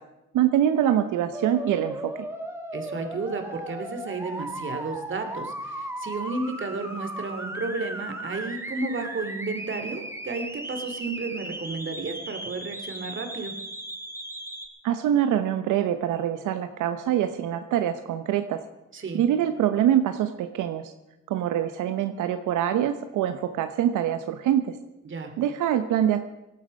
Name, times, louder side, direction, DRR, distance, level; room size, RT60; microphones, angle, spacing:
voice 1, 0.3-2.3 14.8-18.6 19.1-20.9 21.3-24.7 25.4-26.2, right 10 dB, 85° right, 8 dB, 0.9 m, -24 dB
sound 1, 1.3-14.7, right 1 dB, 10° right, 2.1 m, -36 dB
voice 2, 2.7-13.5 18.9-19.2 25.0-25.3, right 3 dB, 40° right, 6 dB, 2.6 m, -32 dB
18.0 x 12.0 x 5.3 m, 0.94 s
cardioid pair, 90°, 30 cm